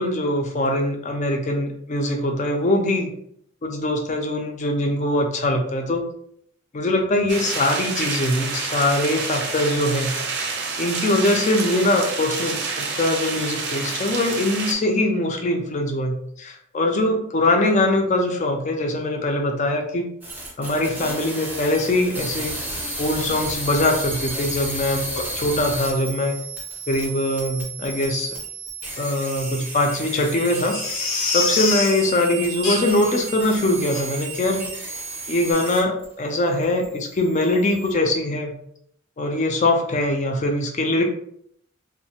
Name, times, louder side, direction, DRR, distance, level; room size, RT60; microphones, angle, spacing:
voice 1, 0.0-3.1 3.6-6.0 6.7-10.1 10.8-20.1 20.6-22.6 23.0-26.4 26.9-28.4 29.0-30.8 31.3-34.6 35.3-38.5 39.2-41.0, left 1 dB, 35° left, 3 dB, 0.4 m, -22 dB
sound 1, 7.3-14.7, right 4 dB, 60° right, 0.5 m, -28 dB
sound 2, 20.2-36.0 36.3-37.9, right 2 dB, 10° right, 0.6 m, -33 dB
Crying sobbing, 30.5-32.0 32.6-33.1 33.5-33.6 33.9-34.1 34.5-34.7 34.9-35.0, left 4 dB, 75° left, 0.7 m, -25 dB
3.1 x 2.1 x 2.8 m, 0.68 s
head